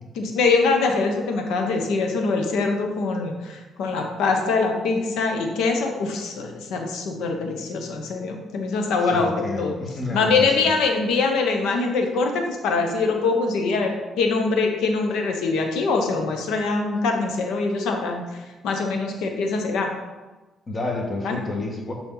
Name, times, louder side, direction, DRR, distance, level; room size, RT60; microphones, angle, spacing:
voice 1, 0.2-9.7 10.1-19.9 21.2-21.4, left 4 dB, 80° left, 3 dB, 0.9 m, -23 dB
voice 2, 9.1-10.7 20.7-21.9, left 2 dB, 35° left, 1 dB, 1.5 m, -30 dB
6.8 x 4.4 x 3.9 m, 1.2 s
supercardioid pair, 60°, 0 cm